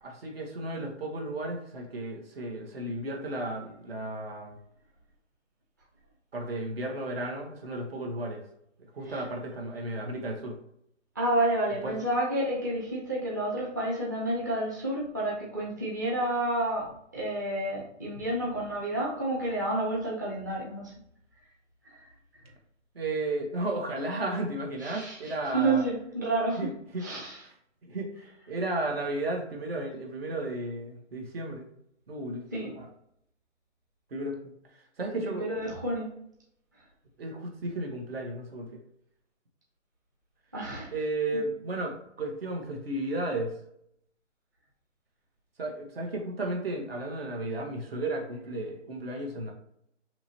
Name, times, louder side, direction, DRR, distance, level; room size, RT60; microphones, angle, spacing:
voice 1, 0.0-4.6 6.3-8.4 8.9-10.6 11.8-12.0 22.9-25.8 26.6-27.0 27.9-28.1 28.5-31.7 32.1-32.9 34.1-34.5 35.0-35.5 37.2-38.7 40.9-43.5 45.6-49.5, right 2 dB, 50° right, 1 dB, 1.2 m, -33 dB
voice 2, 11.1-20.9 24.8-26.7 27.0-27.4 32.5-32.7 35.2-36.1 40.5-40.9, right 1 dB, 15° right, -5 dB, 0.7 m, -30 dB
6.0 x 3.1 x 2.8 m, 0.71 s
hypercardioid pair, 170°, 37 cm